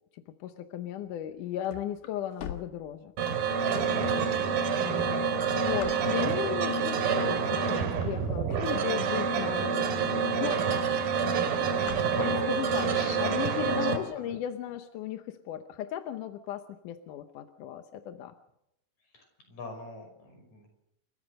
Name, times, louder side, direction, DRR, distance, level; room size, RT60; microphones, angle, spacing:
voice 1, 0.1-3.1 4.8-9.8 10.4-10.6 12.5-12.9 13.2-18.3, left 11 dB, 70° left, 8 dB, 2.1 m, -36 dB
sound 1, 1.2-3.5 4.0-4.1 4.8-6.5 7.1-7.4 7.7-9.2 9.7-9.8 10.0-10.1 10.4-10.8 11.0-12.7, left 9 dB, 90° left, 3.7 m, -44 dB
sound 2, 3.2-14.0, right 6 dB, 75° right, 3.5 m, -27 dB
voice 2, 12.1-12.5 12.8-14.3 19.1-20.8, left 2 dB, 50° left, 3 dB, 6.9 m, -41 dB
30.0 x 14.5 x 6.6 m, 0.81 s
omnidirectional pair, 4.4 m